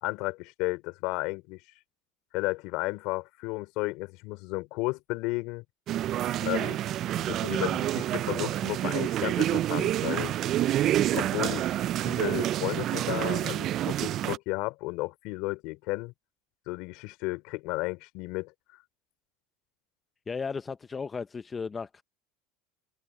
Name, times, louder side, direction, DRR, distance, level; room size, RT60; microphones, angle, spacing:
voice 1, 0.0-1.6 2.3-5.6 6.4-6.8 7.2-10.3 11.1-16.1 16.7-18.5, left 23 dB, 65° left, 3.9 m, -33 dB
sound 1, 5.9-14.4, right 13 dB, 45° right, 0.4 m, -28 dB
voice 2, 20.3-22.0, left 5 dB, 20° left, 0.5 m, -35 dB
supercardioid pair, 115°, 0 cm